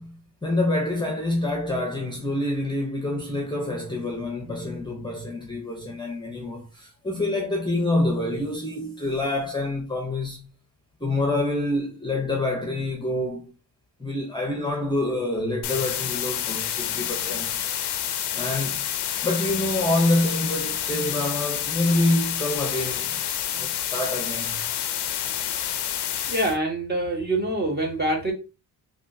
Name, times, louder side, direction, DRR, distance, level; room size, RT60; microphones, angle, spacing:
voice 1, 0.0-10.5 11.0-13.5 14.0-17.5 18.3-18.8 19.2-23.2 23.5-24.6, left 1 dB, 10° left, 0.7 m, -27 dB
sound 1, 15.6-26.6, left 10 dB, 70° left, 0.6 m, -28 dB
voice 2, 26.3-28.3, right 1 dB, 25° right, 1.2 m, -25 dB
3.4 x 2.4 x 2.6 m
cardioid pair, 95°, 42 cm